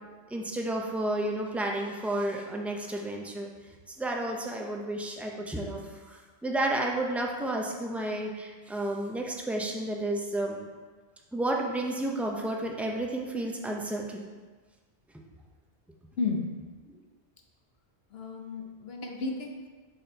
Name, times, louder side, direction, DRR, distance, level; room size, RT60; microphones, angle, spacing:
voice 1, 0.3-3.5 3.9-5.8 6.1-10.6 11.3-14.3, right 1 dB, ahead, 0 dB, 0.3 m, -31 dB
voice 2, 18.1-19.7, left 4 dB, 75° left, 1 dB, 1.0 m, -33 dB
5.4 x 4.2 x 4.4 m, 1.4 s
omnidirectional pair, 1.1 m